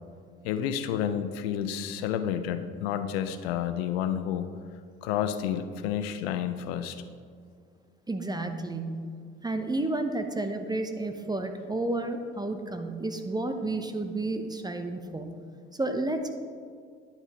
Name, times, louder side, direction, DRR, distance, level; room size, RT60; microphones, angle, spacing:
voice 1, 0.4-4.5 5.0-7.0, left 9 dB, 80° left, 10 dB, 0.5 m, -30 dB
voice 2, 8.1-9.0 9.4-15.3 15.7-16.3, right 2 dB, 15° right, 6 dB, 0.7 m, -31 dB
10.0 x 7.9 x 2.9 m, 2.1 s
hypercardioid pair, 60°, 30 cm